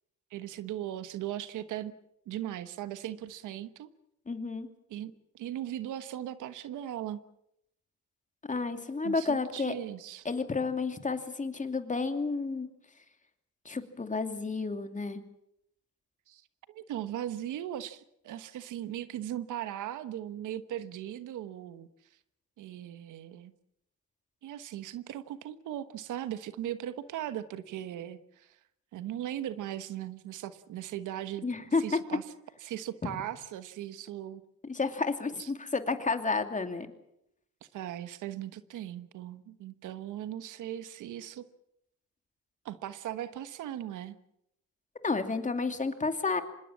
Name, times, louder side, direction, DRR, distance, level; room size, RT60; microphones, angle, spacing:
voice 1, 0.3-1.9 2.3-3.9 4.9-7.2 9.0-10.3 16.3-16.4 16.7-21.9 22.6-23.5 24.4-28.6 28.9-31.5 31.8-32.2 32.6-34.4 35.3-35.5 37.7-41.5 42.6-44.2, right 12 dB, 85° right, 13 dB, 1.3 m, -38 dB
voice 2, 4.3-4.7 8.5-9.7 10.2-12.7 13.6-15.2 31.4-31.8 34.6-36.9 45.0-46.4, left 4 dB, 25° left, 7 dB, 2.7 m, -31 dB
25.5 x 21.0 x 7.4 m, 0.80 s
cardioid pair, 90°, 30 cm